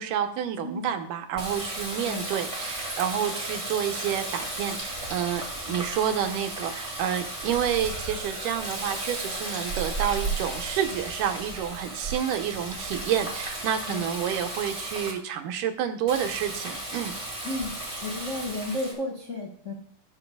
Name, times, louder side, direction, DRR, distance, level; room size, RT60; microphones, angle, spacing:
voice 1, 0.0-17.1, right 9 dB, 90° right, 7 dB, 2.5 m, -29 dB
Water tap faucet, 1.4-15.1 16.1-18.9, right 2 dB, 10° right, 1.8 m, -34 dB
voice 2, 2.0-2.4 5.6-5.9 13.9-14.1 17.4-17.8 18.0-19.7, left 2 dB, 50° left, -3 dB, 0.9 m, -33 dB
17.0 x 6.4 x 2.3 m, 0.66 s
omnidirectional pair, 3.6 m